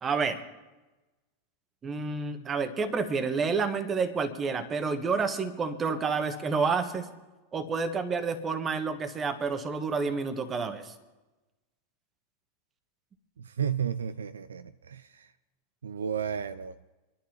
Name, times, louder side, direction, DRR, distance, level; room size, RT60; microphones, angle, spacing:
voice 1, 0.0-0.5 1.8-7.1 7.5-10.9, right 4 dB, 25° right, 9 dB, 1.3 m, -29 dB
voice 2, 13.4-15.3 15.8-16.8, right 8 dB, 70° right, 13 dB, 0.4 m, -33 dB
26.0 x 11.5 x 2.9 m, 1.1 s
figure-of-eight pair, 85°, 0 cm